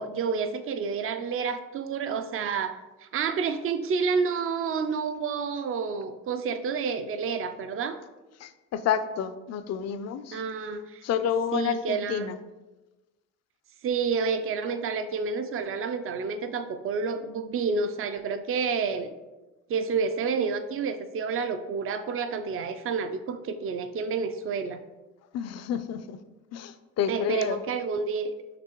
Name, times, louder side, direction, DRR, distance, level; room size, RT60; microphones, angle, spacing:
voice 1, 0.0-2.8 3.0-8.0 10.3-11.0 11.5-12.4 13.8-19.1 19.7-24.8 27.1-28.3, right 5 dB, 45° right, 10 dB, 0.4 m, -29 dB
voice 2, 8.4-10.4 11.0-12.4 25.3-26.2 26.5-27.6, left 8 dB, 60° left, 12 dB, 0.4 m, -29 dB
5.9 x 3.0 x 3.0 m, 1.1 s
cardioid pair, 90°, 30 cm